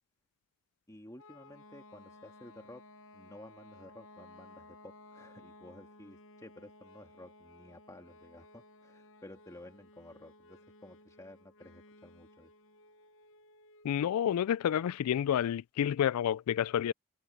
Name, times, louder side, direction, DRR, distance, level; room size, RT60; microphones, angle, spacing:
voice 1, 0.9-2.8 3.1-12.5, left 1 dB, 15° left, 2.3 m, -53 dB
sound 1, 1.2-14.0, left 2 dB, 65° left, 1.1 m, -57 dB
voice 2, 13.8-16.9, left 9 dB, 80° left, 0.3 m, -29 dB
head